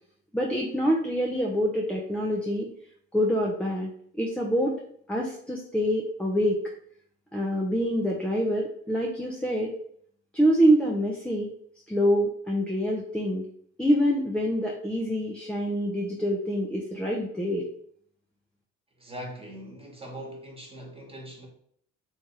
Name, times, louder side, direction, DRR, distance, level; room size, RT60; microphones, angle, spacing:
voice 1, 0.3-2.7 3.1-4.8 5.1-6.6 7.3-9.7 10.3-11.5 11.9-13.5 13.8-17.7, equal, 5° left, 0.7 m, -26 dB
voice 2, 19.0-21.5, equal, 15° right, 1.5 m, -41 dB
3.4 x 2.7 x 4.6 m
hypercardioid pair, 55°, 34 cm